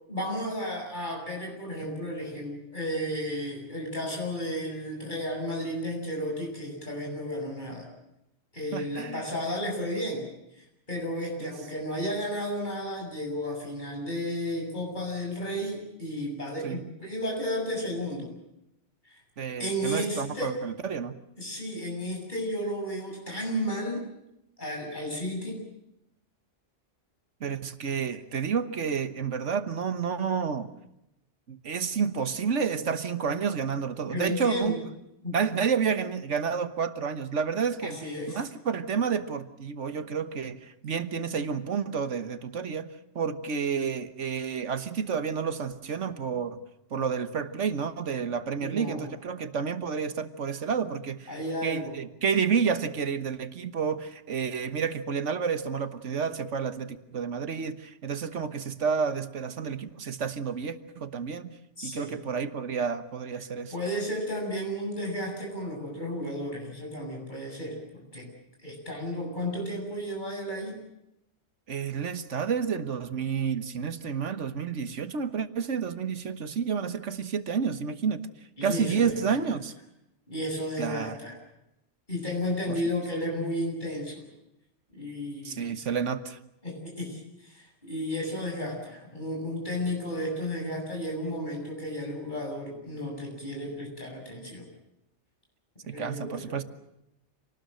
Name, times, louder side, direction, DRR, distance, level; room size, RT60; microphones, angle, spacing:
voice 1, 0.1-7.9 8.5-10.3 10.6-18.3 19.1-19.2 19.6-20.6 21.4-24.0 24.6-25.6 34.1-34.8 35.2-35.4 37.8-38.4 48.6-49.1 51.3-51.9 61.8-62.2 63.7-68.3 68.6-70.8 78.6-79.2 80.3-81.4 82.1-84.2 84.9-85.7 86.6-94.7 95.9-96.6, equal, 40° left, 0 dB, 7.8 m, -33 dB
voice 2, 8.7-9.3 11.4-11.6 16.6-16.8 19.4-21.2 27.4-30.7 31.5-34.7 35.3-38.0 38.3-46.6 46.9-51.3 51.6-61.5 61.8-63.7 71.7-78.2 78.6-79.7 80.8-81.2 82.7-82.8 85.4-86.4 96.0-96.6, right 6 dB, 85° right, 11 dB, 1.6 m, -30 dB
27.5 x 19.5 x 7.8 m, 0.84 s
omnidirectional pair, 1.2 m